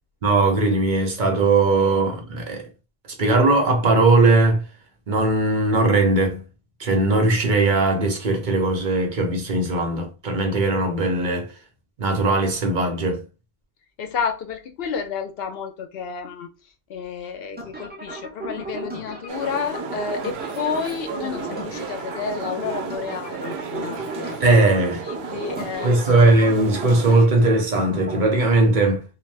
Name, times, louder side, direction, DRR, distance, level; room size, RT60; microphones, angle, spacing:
voice 1, 0.2-2.6 3.2-4.6 5.1-6.4 6.8-11.5 12.0-13.2 24.4-25.0 25.8-29.0, right 2 dB, 55° right, 0.8 m, -19 dB
voice 2, 14.0-16.5 16.9-24.4 25.0-25.9, left 6 dB, 70° left, 0.8 m, -30 dB
sound 1, 17.6-28.2, right 1 dB, 10° right, 0.6 m, -35 dB
sound 2, 19.3-27.2, right 6 dB, 85° right, 0.8 m, -34 dB
2.6 x 2.2 x 3.2 m
omnidirectional pair, 1.0 m